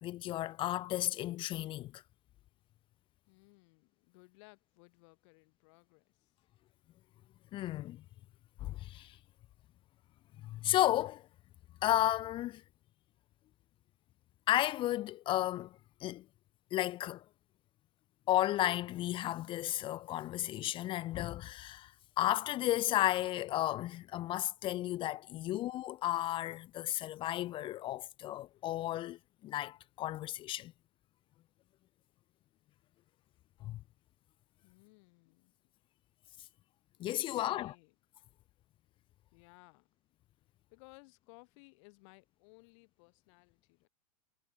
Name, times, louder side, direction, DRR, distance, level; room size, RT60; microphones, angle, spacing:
voice 1, 0.0-2.0 7.5-8.0 8.6-9.2 10.4-11.2 11.8-12.6 14.5-16.2 16.7-17.2 18.3-30.7 33.6-33.8 37.0-37.7, left 14 dB, 30° left, 0.4 m, -33 dB
voice 2, 3.3-6.3 34.6-35.5 36.4-36.5 37.3-38.0 39.3-39.9 40.7-43.9, left 30 dB, 55° left, 7.9 m, -60 dB
hypercardioid pair, 110°, 19 cm